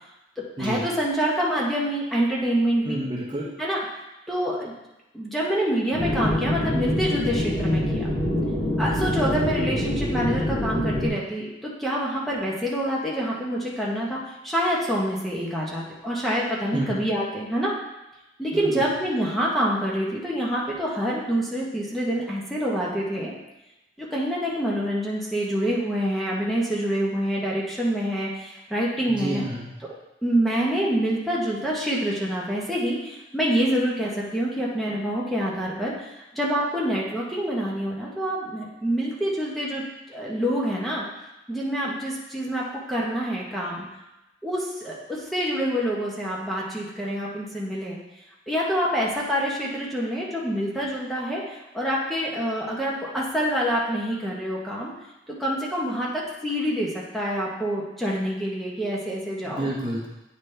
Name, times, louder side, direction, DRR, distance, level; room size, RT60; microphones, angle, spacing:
voice 1, 0.4-3.0 3.6-3.8 4.3-4.7 5.1-8.1 8.8-17.7 18.4-23.3 24.0-29.4 29.8-30.0 30.2-39.8 40.1-41.0 41.5-43.9 44.4-48.0 48.5-54.9 55.3-59.7, equal, ahead, -5 dB, 1.0 m, -26 dB
voice 2, 2.8-3.5 16.7-16.9 18.5-18.8 29.1-29.7 59.4-60.1, right 1 dB, 25° right, -4 dB, 0.9 m, -29 dB
sound 1, 5.9-11.1, left 1 dB, 35° left, 1.4 m, -25 dB
9.0 x 4.0 x 3.3 m, 0.97 s
head